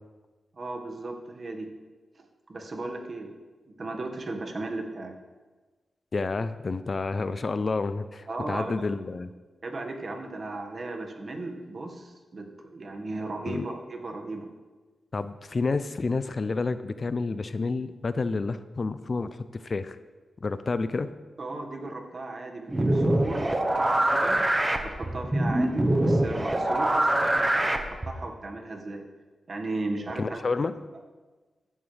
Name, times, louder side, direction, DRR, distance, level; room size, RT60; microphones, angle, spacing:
voice 1, 0.5-1.7 2.1-3.3 3.8-5.1 8.3-8.7 9.6-14.5 21.4-24.4 24.8-29.0 29.5-30.4, right 2 dB, 50° right, 2 dB, 1.8 m, -36 dB
voice 2, 6.1-9.3 13.5-13.6 15.1-20.0 20.4-21.1 30.2-30.7, left 3 dB, 45° left, 12 dB, 0.6 m, -29 dB
sound 1, 22.7-28.2, right 1 dB, 20° right, 1.1 m, -24 dB
15.0 x 11.0 x 3.4 m, 1.3 s
cardioid pair, 80°, 0 cm